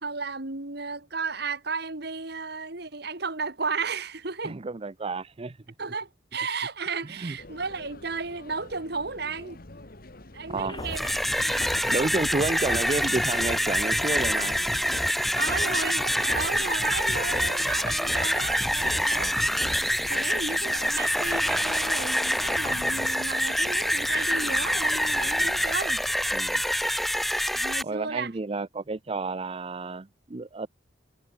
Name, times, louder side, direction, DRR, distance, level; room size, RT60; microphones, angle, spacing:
voice 1, 0.0-4.6 5.8-9.6 10.3-11.1 15.3-19.8 20.1-26.0 27.5-28.3, right 4 dB, 60° right, 2.6 m, -34 dB
voice 2, 4.4-5.6 7.1-7.3 10.5-10.7 11.9-14.6 19.1-19.3 26.3-26.6 27.8-30.7, right 3 dB, 30° right, 0.6 m, -31 dB
sound 1, 7.4-25.8, left 1 dB, 55° left, 2.4 m, -47 dB
sound 2, 10.5-19.8, left 1 dB, 25° left, 1.5 m, -37 dB
sound 3, 10.8-27.8, equal, ahead, 0.9 m, -26 dB
head